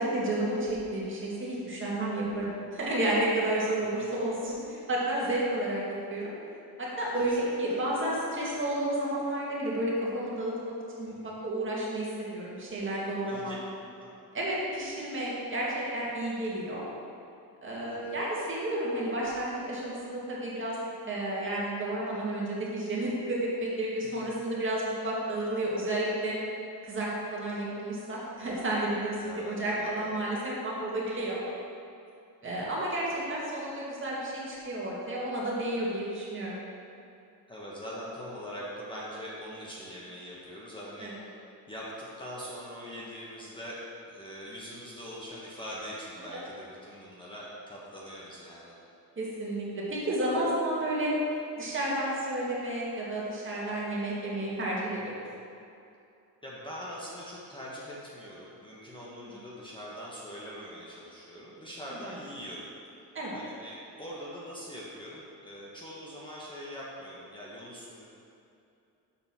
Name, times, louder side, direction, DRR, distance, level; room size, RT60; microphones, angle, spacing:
voice 1, 0.0-6.3 6.8-13.5 14.3-16.8 17.6-20.8 21.0-26.3 26.8-31.4 32.4-36.6 41.0-41.1 49.2-51.1 51.6-55.1 63.1-63.4, right 1 dB, 30° right, -5 dB, 2.0 m, -31 dB
voice 2, 2.3-2.6 3.8-3.9 7.2-7.8 11.1-11.4 13.2-13.6 13.9-14.1 17.9-18.2 29.2-30.2 32.4-32.7 37.5-41.4 41.7-49.0 55.0-55.3 56.4-62.7 63.3-68.0, equal, 15° left, -6 dB, 1.3 m, -43 dB
7.1 x 5.4 x 5.9 m, 2.6 s
cardioid pair, 125°, 38 cm